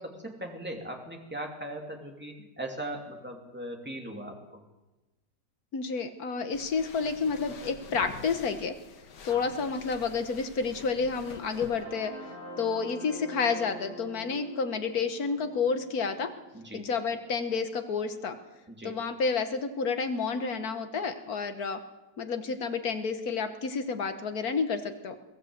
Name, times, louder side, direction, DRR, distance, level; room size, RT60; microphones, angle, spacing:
voice 1, 0.0-4.6 9.2-9.5 16.5-16.8 18.7-19.0, right 1 dB, 5° right, 1 dB, 2.7 m, -39 dB
voice 2, 5.7-8.8 9.2-12.1 12.6-16.3 16.7-18.4 18.8-21.8 22.2-25.2, left 5 dB, 65° left, 8 dB, 1.7 m, -30 dB
sound 1, 6.5-11.8, left 6 dB, 80° left, 1.8 m, -47 dB
sound 2, 11.0-18.9, left 1 dB, 75° right, 5.2 m, -47 dB
22.0 x 15.0 x 8.0 m, 1.1 s
omnidirectional pair, 1.8 m